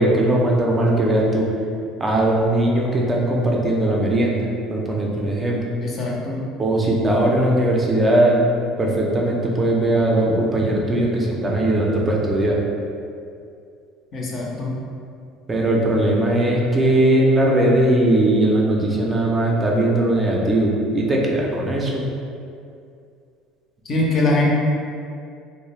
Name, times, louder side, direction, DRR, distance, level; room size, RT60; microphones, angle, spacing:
voice 1, 0.0-1.5 2.0-4.4 4.7-5.6 6.6-8.4 8.8-12.7 15.5-22.0, right 1 dB, 20° right, -2 dB, 0.4 m, -19 dB
voice 2, 5.8-6.4 14.1-14.7 23.8-24.5, left 2 dB, 45° left, -3 dB, 0.5 m, -22 dB
2.3 x 2.0 x 2.9 m, 2.4 s
supercardioid pair, 105°, 0 cm